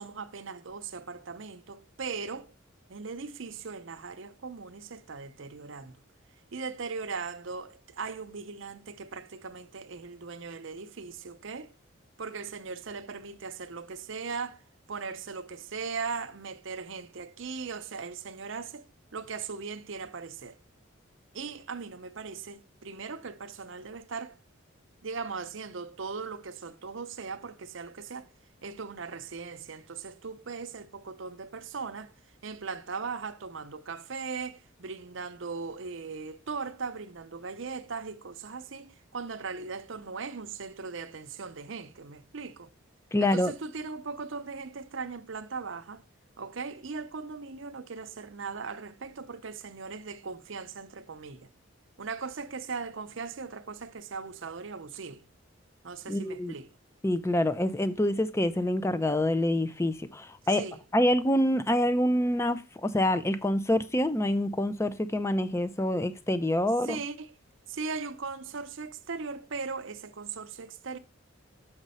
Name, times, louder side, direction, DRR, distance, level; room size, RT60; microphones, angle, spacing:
voice 1, 0.0-2.5 2.9-6.0 6.5-11.7 12.2-14.6 14.9-20.6 21.3-24.4 25.0-28.3 28.6-32.1 32.4-42.7 43.2-46.0 46.4-51.5 52.0-55.2 55.8-56.7 60.5-60.8 66.8-67.4 67.7-71.0, right 5 dB, 65° right, 0.7 m, -39 dB
voice 2, 43.1-43.5 56.1-56.5 57.0-60.6 60.9-67.0, left 1 dB, 15° left, 0.5 m, -26 dB
7.2 x 5.2 x 5.5 m
head